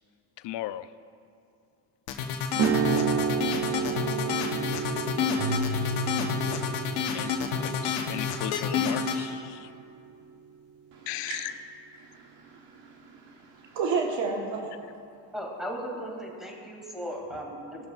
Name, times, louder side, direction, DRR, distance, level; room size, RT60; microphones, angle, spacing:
voice 1, 0.4-0.9 3.9-4.1 7.1-7.3 7.6-9.7 11.1-11.5, left 14 dB, 65° left, 14 dB, 0.6 m, -36 dB
sound 1, 2.1-9.2, left 6 dB, 85° left, 1.0 m, -29 dB
sound 2, 2.5-10.6, right 8 dB, 35° right, 0.4 m, -32 dB
Keyboard (musical), 5.4-7.6, equal, 90° right, 1.3 m, -34 dB
voice 2, 10.9-11.5 12.0-14.7, right 4 dB, 70° right, 1 dB, 1.4 m, -33 dB
voice 3, 15.3-17.9, equal, ahead, -2 dB, 2.3 m, -37 dB
19.0 x 6.6 x 2.4 m, 2.4 s
supercardioid pair, 80°, 46 cm